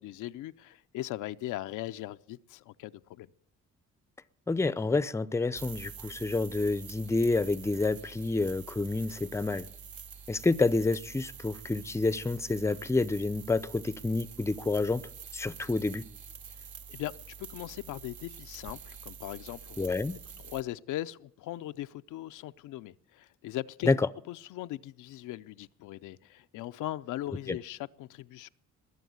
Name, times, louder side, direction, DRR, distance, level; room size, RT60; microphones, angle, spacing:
voice 1, 0.0-3.3 16.5-17.1 17.4-19.9 20.4-23.9 24.3-28.5, left 15 dB, 85° left, 0.6 m, -39 dB
voice 2, 4.5-9.7 10.3-15.0 15.3-16.0 19.8-20.2 23.8-24.1 27.5-27.6, left 3 dB, 10° left, 0.5 m, -28 dB
sound 1, 5.6-20.6, right 7 dB, 75° right, 1.5 m, -47 dB
21.0 x 7.2 x 9.4 m
cardioid pair, 90°, 30 cm